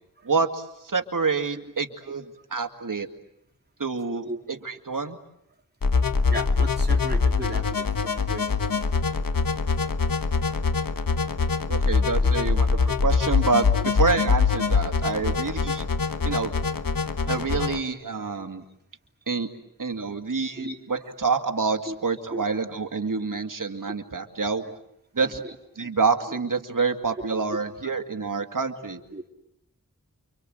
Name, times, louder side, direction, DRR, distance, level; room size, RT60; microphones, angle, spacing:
voice 1, 0.2-2.2 2.5-3.1 3.8-5.2 11.7-15.9 16.2-16.5 17.2-18.6 19.3-19.5 19.8-24.6 25.1-25.4 25.8-29.0, right 4 dB, 65° right, 6 dB, 2.3 m, -27 dB
sound 1, 5.8-17.8, left 5 dB, 75° left, 1.3 m, -23 dB
voice 2, 6.3-8.9 9.8-9.9 11.2-11.4 18.3-18.5 20.6-20.8 21.9-22.0 22.3-22.4 25.2-25.5 27.3-27.4 29.1-29.2, right 1 dB, 30° right, 1 dB, 3.5 m, -36 dB
29.0 x 25.5 x 7.8 m, 0.79 s
wide cardioid pair, 50°, 34 cm